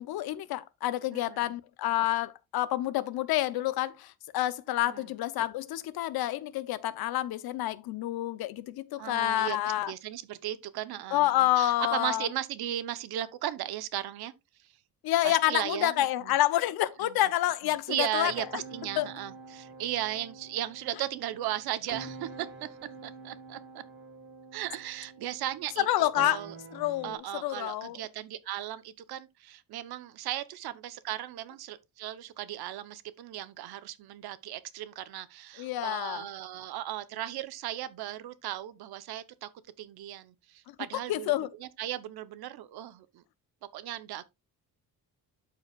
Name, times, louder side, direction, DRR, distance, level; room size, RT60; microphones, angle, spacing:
voice 1, 0.0-9.9 11.1-12.3 15.0-18.3 19.0-19.1 25.9-26.4 26.7-28.0 35.6-36.2 41.1-41.5, left 14 dB, 80° left, 0.8 m, -28 dB
voice 2, 1.1-1.5 4.9-5.1 9.0-14.3 15.2-16.4 17.0-17.2 17.6-22.7 23.0-23.8 24.5-26.6 27.0-39.5 39.8-43.2 43.7-44.3, right 12 dB, 85° right, 0.9 m, -36 dB
sound 1, 18.2-27.2, right 4 dB, 30° right, 1.8 m, -47 dB
13.0 x 4.8 x 2.4 m
cardioid pair, 155°, 36 cm